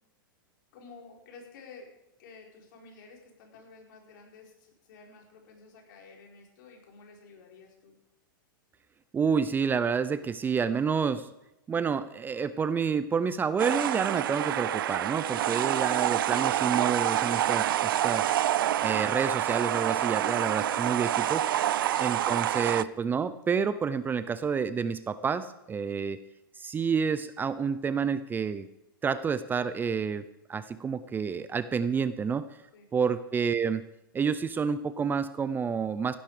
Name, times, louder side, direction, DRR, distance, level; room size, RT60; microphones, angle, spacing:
voice 1, 0.7-1.9 2.2-8.0 21.6-22.0 32.7-32.9, left 4 dB, 60° left, 1 dB, 5.0 m, -52 dB
voice 2, 9.1-11.3 11.7-18.3 18.8-21.4 22.0-26.2 26.6-28.7 29.0-30.2 30.5-32.5 32.9-33.9 34.1-36.2, right 6 dB, 15° right, 14 dB, 0.6 m, -29 dB
sound 1, 13.6-22.8, right 12 dB, 75° right, 0.5 m, -27 dB
16.5 x 12.0 x 5.1 m, 0.88 s
hypercardioid pair, 120°, 12 cm